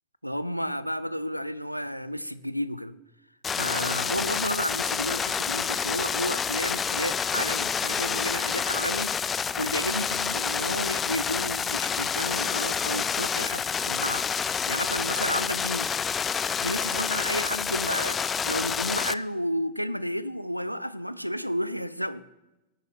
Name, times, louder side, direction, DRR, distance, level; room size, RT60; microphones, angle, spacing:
voice 1, 0.2-3.0 3.5-14.2 14.7-15.9 16.6-22.2, equal, 90° right, 0.4 m, -32 dB
sound 1, 3.4-19.1, left 6 dB, 20° left, 0.3 m, -28 dB
18.5 x 9.5 x 2.4 m
figure-of-eight pair, 90°, 0 cm